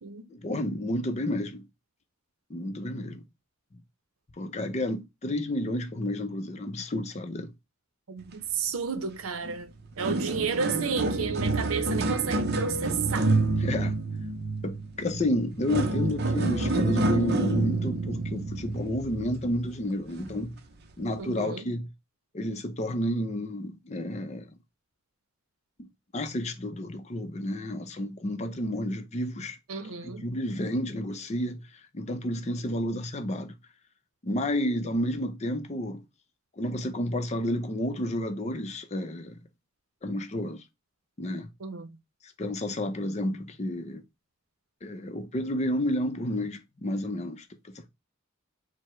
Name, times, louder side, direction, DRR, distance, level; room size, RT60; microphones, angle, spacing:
voice 1, 0.3-1.7 2.5-3.2 4.4-7.5 13.6-14.0 14.6-20.6 21.0-21.9 22.3-24.5 25.8-29.6 29.8-33.5 34.2-36.1 36.6-39.4 40.0-40.6 41.2-41.5 42.2-44.0 44.8-47.9, left 1 dB, 30° left, 0.5 m, -31 dB
voice 2, 8.1-9.7 10.0-13.3 21.2-21.7 29.7-30.3 41.6-42.0, right 6 dB, 90° right, 0.6 m, -32 dB
sound 1, 9.4-9.6 9.8-19.5 20.2-20.4 21.1-21.2, right 2 dB, 50° right, 0.6 m, -28 dB
sound 2, 10.4-14.9, left 3 dB, 25° right, 1.6 m, -50 dB
4.6 x 2.1 x 4.3 m
head